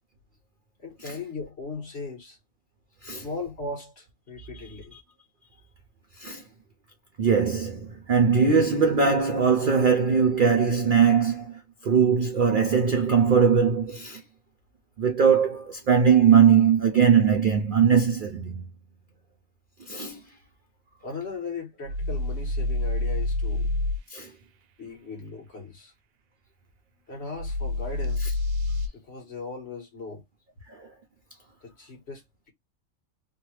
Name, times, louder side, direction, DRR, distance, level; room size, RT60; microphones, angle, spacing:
voice 1, 0.8-2.4 3.1-5.0 21.0-23.7 24.8-25.9 27.1-28.4 29.1-30.2 31.6-32.5, left 3 dB, 50° left, 1.6 m, -38 dB
voice 2, 7.2-14.2 15.0-18.7 19.9-20.2 24.1-24.3 28.2-28.3 30.8-30.9, right 6 dB, 60° right, 0.5 m, -21 dB
sound 1, 21.9-24.0 27.4-28.9, left 2 dB, 80° right, 1.0 m, -27 dB
3.2 x 2.2 x 2.9 m
omnidirectional pair, 1.4 m